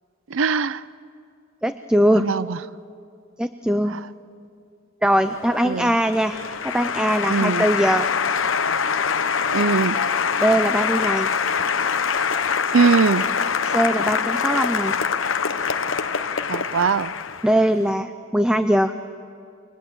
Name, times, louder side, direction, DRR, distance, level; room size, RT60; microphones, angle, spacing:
voice 1, 0.3-0.8 2.2-2.6 5.6-5.9 7.3-7.6 9.5-10.0 12.7-13.3 16.5-17.1, right 5 dB, 75° right, 17 dB, 0.5 m, -21 dB
voice 2, 1.6-2.3 3.4-4.0 5.0-6.4 6.6-8.1 10.4-11.3 13.6-15.0 17.4-18.9, equal, 5° right, 9 dB, 0.6 m, -21 dB
Applause, 5.2-17.7, left 6 dB, 75° left, 0.9 m, -24 dB
29.5 x 22.5 x 8.1 m, 2.4 s
head